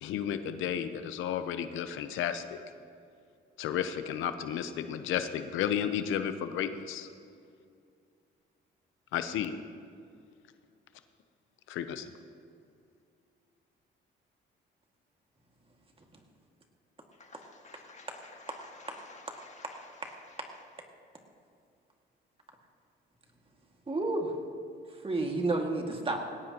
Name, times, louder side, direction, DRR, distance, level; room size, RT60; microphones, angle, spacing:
voice 1, 0.0-2.6 3.6-7.1 9.1-9.6 11.7-12.1, left 9 dB, 90° left, 0.8 m, -32 dB
voice 2, 17.1-20.4, left 3 dB, 35° left, 2.0 m, -53 dB
voice 3, 23.9-24.3 25.0-26.2, right 2 dB, 30° right, 2.1 m, -30 dB
19.0 x 17.0 x 2.9 m
cardioid pair, 90°, 20 cm